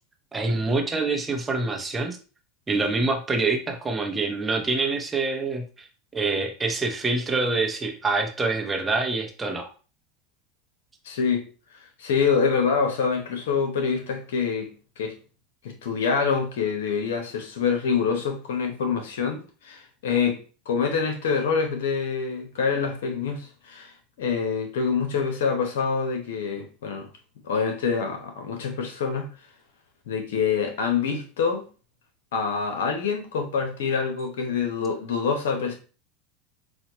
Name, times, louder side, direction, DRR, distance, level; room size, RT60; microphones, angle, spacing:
voice 1, 0.3-2.2 2.7-5.9 6.1-9.7, right 3 dB, 15° right, 0.8 m, -26 dB
voice 2, 11.0-11.4 12.0-15.2 15.6-20.4 20.7-27.1 27.4-29.3 30.1-31.7 32.3-35.7, left 5 dB, 85° left, 1.0 m, -26 dB
4.1 x 2.3 x 3.0 m
supercardioid pair, 105°, 0 cm